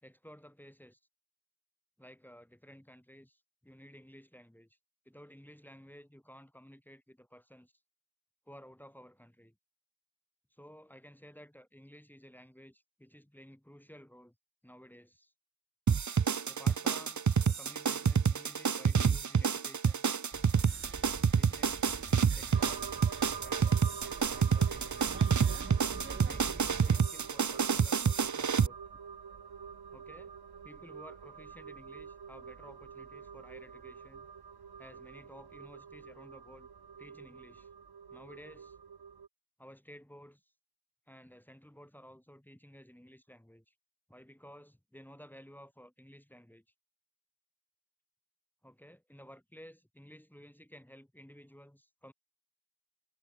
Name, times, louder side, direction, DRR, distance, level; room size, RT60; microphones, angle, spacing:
voice 1, 0.0-1.0 2.0-4.7 5.0-7.7 8.5-9.5 10.5-14.3 14.6-15.3 16.5-20.1 21.3-21.9 22.3-23.1 23.4-23.8 24.3-25.1 26.2-28.8 29.9-30.3 30.6-34.3 34.8-36.7 37.0-37.7 38.1-38.8 39.6-40.4 41.1-43.7 44.1-46.6 48.6-52.1, equal, 5° left, 4.5 m, -54 dB
sound 1, 15.9-28.7, right 6 dB, 50° right, 1.0 m, -28 dB
sound 2, 20.3-27.0, right 4 dB, 30° right, 1.3 m, -45 dB
sound 3, 22.5-39.3, right 6 dB, 85° right, 3.1 m, -47 dB
wide cardioid pair, 115°, 38 cm